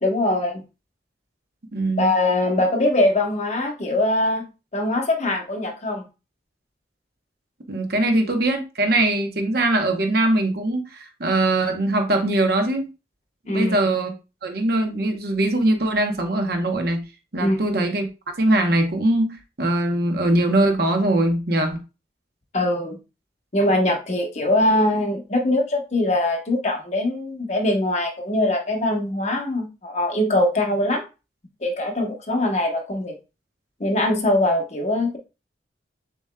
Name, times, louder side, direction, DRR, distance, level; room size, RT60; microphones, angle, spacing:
voice 1, 0.0-0.6 2.0-6.1 13.5-13.8 17.4-17.6 22.5-23.0 23.5-31.0 31.6-33.1 33.8-35.2, left 1 dB, 40° left, 0.9 m, -22 dB
voice 2, 1.7-2.1 7.7-12.9 13.5-14.1 14.4-17.0 17.3-18.1 18.4-21.8, right 1 dB, 55° right, 0.9 m, -21 dB
7.1 x 2.9 x 2.2 m
head